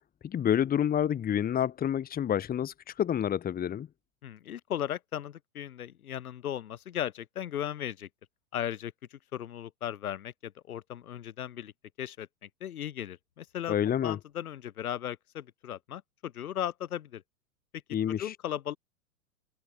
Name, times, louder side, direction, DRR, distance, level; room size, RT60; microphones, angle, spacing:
voice 1, 0.2-3.9 13.7-14.2 17.9-18.3, left 9 dB, 20° left, 1.6 m, -28 dB
voice 2, 4.2-8.1 8.5-8.9 9.3-11.7 12.0-12.3 12.6-13.7 14.0-17.2 18.1-18.8, left 10 dB, 70° left, 2.1 m, -36 dB
open air
hypercardioid pair, 105°, 44 cm